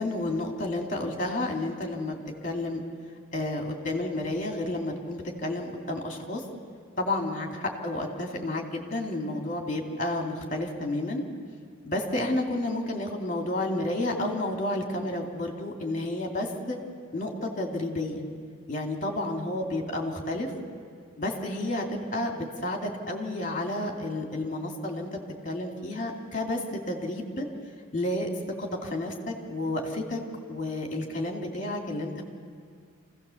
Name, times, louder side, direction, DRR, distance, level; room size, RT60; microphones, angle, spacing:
voice 1, 0.0-2.1 2.4-2.8 3.3-6.4 7.0-11.2 11.8-16.8 17.1-18.2 18.7-20.5 21.2-25.1 25.4-27.5 27.9-28.3 28.6-30.2 30.5-32.2, left 1 dB, 35° left, 1 dB, 2.5 m, -31 dB
27.0 x 16.5 x 7.1 m, 2.1 s
head